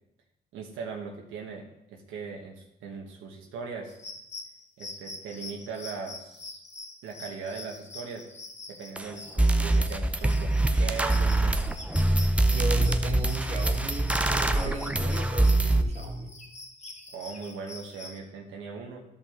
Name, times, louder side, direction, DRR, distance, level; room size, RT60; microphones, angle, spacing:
voice 1, 0.5-3.9 4.8-6.6 7.0-8.3 8.7-11.7 17.1-19.0, right 5 dB, 90° right, 0 dB, 1.2 m, -39 dB
sound 1, 3.9-18.2, left 2 dB, 35° left, 1.5 m, -45 dB
sound 2, 9.0-9.1 9.4-15.8, right 2 dB, 5° right, 0.5 m, -24 dB
voice 2, 12.5-16.4, right 1 dB, 35° right, 1 dB, 1.8 m, -34 dB
12.5 x 5.4 x 3.7 m, 0.81 s
cardioid pair, 90°, 20 cm